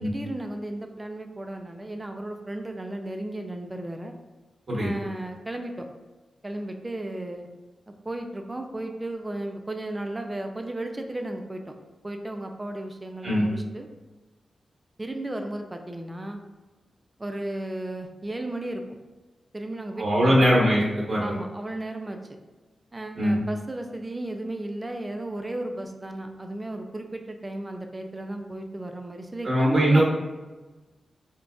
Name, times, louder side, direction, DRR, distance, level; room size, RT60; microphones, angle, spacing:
voice 1, 0.0-4.1 4.8-5.9 6.4-7.5 7.9-11.6 12.0-13.9 15.0-16.4 17.2-18.8 19.5-20.4 21.2-22.2 22.9-30.0, right 1 dB, 20° right, 5 dB, 0.3 m, -34 dB
voice 2, 20.0-20.8 21.1-21.3 23.2-23.4 29.4-30.0, equal, 45° right, -5 dB, 1.2 m, -20 dB
3.7 x 2.2 x 2.4 m, 1.2 s
wide cardioid pair, 90°, 0 cm